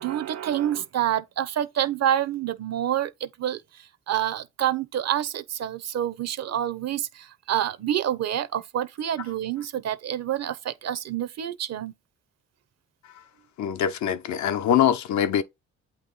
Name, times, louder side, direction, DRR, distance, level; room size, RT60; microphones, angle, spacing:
voice 1, 0.0-3.6 4.1-11.9, right 11 dB, 60° right, 0.7 m, -27 dB
voice 2, 13.6-15.4, left 9 dB, 70° left, 0.7 m, -23 dB
8.3 x 3.1 x 4.0 m
cardioid pair, 90°, 30 cm